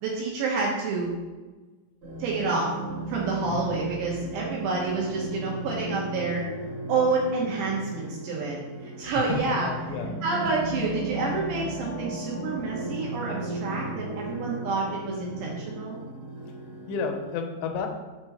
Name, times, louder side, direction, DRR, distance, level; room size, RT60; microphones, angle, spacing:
voice 1, 0.0-1.1 2.2-2.7 3.1-6.4 6.9-8.6 9.0-9.7 10.2-16.0, right 4 dB, 75° right, -3 dB, 2.8 m, -28 dB
sound 1, 2.0-17.3, right 1 dB, 50° right, 2.8 m, -36 dB
voice 2, 3.4-3.8 9.2-10.2 16.9-17.9, left 5 dB, 85° left, 4 dB, 2.5 m, -31 dB
7.9 x 6.0 x 3.0 m, 1.3 s
omnidirectional pair, 5.8 m